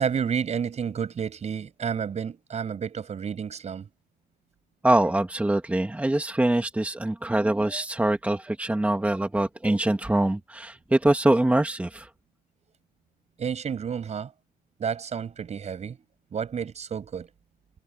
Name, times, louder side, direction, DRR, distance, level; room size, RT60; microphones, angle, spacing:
voice 1, 0.0-3.9 13.4-14.3 14.8-16.0 16.3-17.3, right 7 dB, 40° right, 7.1 m, -30 dB
voice 2, 4.8-12.1, right 1 dB, 10° right, 1.9 m, -24 dB
cardioid pair, 110°, 17 cm